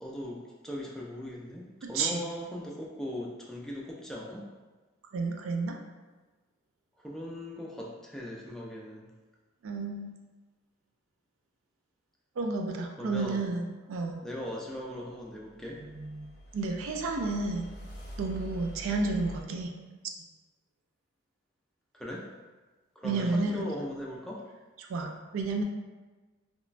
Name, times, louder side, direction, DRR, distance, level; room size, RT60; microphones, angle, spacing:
voice 1, 0.0-4.5 7.0-9.1 13.0-13.5 14.2-15.8 21.9-22.2 23.0-24.4, left 1 dB, ahead, -4 dB, 0.3 m, -39 dB
voice 2, 1.8-2.2 5.1-5.8 9.6-10.1 12.4-14.2 15.9-17.7 18.2-19.7 23.0-23.7 24.8-25.6, right 3 dB, 90° right, 2 dB, 0.4 m, -31 dB
sound 1, 15.4-19.4, equal, 50° left, 0.6 m, -45 dB
2.9 x 2.1 x 2.5 m, 1.3 s
head